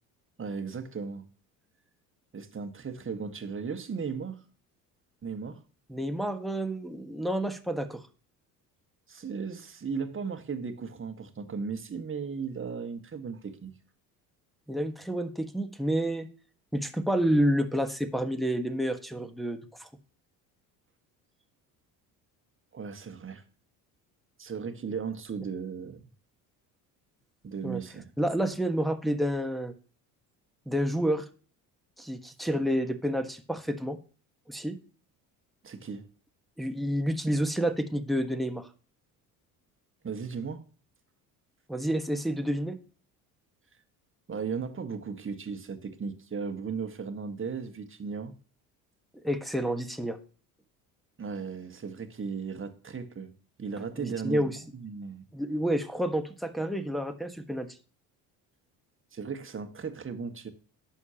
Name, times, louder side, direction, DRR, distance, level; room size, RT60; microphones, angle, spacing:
voice 1, 0.4-1.3 2.3-4.4 5.2-5.6 9.1-13.7 22.7-23.4 24.4-26.1 27.4-28.1 35.6-36.1 40.0-40.6 44.3-48.4 51.2-53.3 53.6-55.2 59.1-60.5, right 5 dB, 25° right, 1.5 m, -36 dB
voice 2, 5.9-8.0 14.7-16.3 16.7-19.9 27.6-27.8 28.2-29.7 30.7-31.3 32.0-34.0 34.5-34.8 36.6-38.7 41.7-42.8 49.2-50.2 54.0-54.6 55.3-57.7, equal, ahead, 1.3 m, -29 dB
11.0 x 7.2 x 2.9 m
hypercardioid pair, 65°, 45 cm